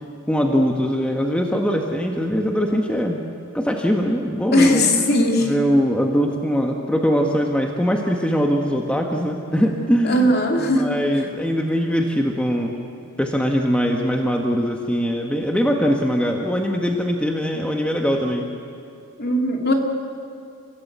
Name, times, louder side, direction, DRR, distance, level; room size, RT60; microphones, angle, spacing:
voice 1, 0.3-3.2 3.5-4.9 5.4-10.3 10.6-12.7 13.2-18.5, equal, 5° left, 2 dB, 1.4 m, -21 dB
voice 2, 4.5-5.5 10.0-10.9 19.2-19.7, left 1 dB, 50° left, 2 dB, 2.9 m, -18 dB
29.5 x 16.0 x 8.2 m, 2.6 s
head